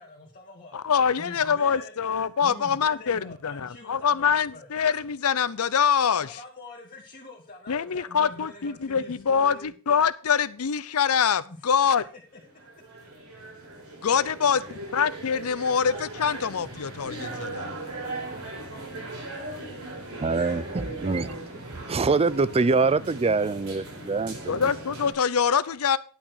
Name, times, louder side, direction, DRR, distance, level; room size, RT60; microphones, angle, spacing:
voice 1, 0.0-0.8 1.2-1.9 2.4-4.7 6.1-9.7 11.5-11.6 11.9-12.0 23.4-23.6, left 2 dB, 40° left, 2.0 m, -45 dB
voice 2, 0.7-6.4 7.7-12.0 14.0-17.7 24.5-26.0, left 7 dB, 80° left, 0.6 m, -24 dB
sound 1, 12.4-25.1, right 2 dB, 80° right, 4.2 m, -38 dB
voice 3, 20.2-24.6, right 4 dB, 25° right, 0.4 m, -25 dB
11.0 x 5.9 x 6.4 m
head